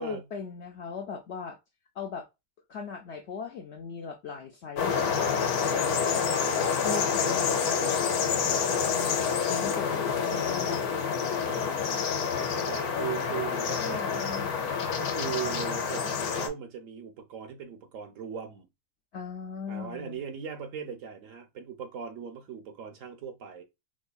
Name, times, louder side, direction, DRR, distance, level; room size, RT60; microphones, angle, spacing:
voice 1, 0.0-1.6 1.9-2.3 2.7-6.3 6.8-11.7 13.7-14.5 19.1-20.2, left 6 dB, 65° left, 0.7 m, -39 dB
sound 1, 4.8-16.5, left 6 dB, 85° left, 1.2 m, -28 dB
voice 2, 12.4-14.3 14.9-18.7 19.7-23.6, right 8 dB, 65° right, 0.9 m, -39 dB
4.1 x 2.7 x 2.2 m
omnidirectional pair, 1.6 m